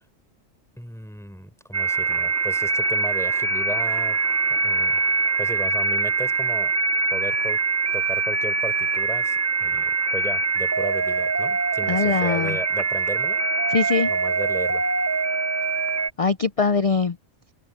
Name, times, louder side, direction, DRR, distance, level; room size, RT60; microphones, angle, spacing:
voice 1, 0.8-4.2 4.6-5.0 5.4-6.7 7.1-7.6 7.9-13.4 14.0-14.9, equal, ahead, 4.4 m, -35 dB
sound 1, 1.7-16.1, right 4 dB, 25° right, 0.3 m, -23 dB
voice 2, 11.9-12.6 13.7-14.1 16.2-17.2, left 5 dB, 65° left, 0.3 m, -22 dB
omnidirectional pair, 1.3 m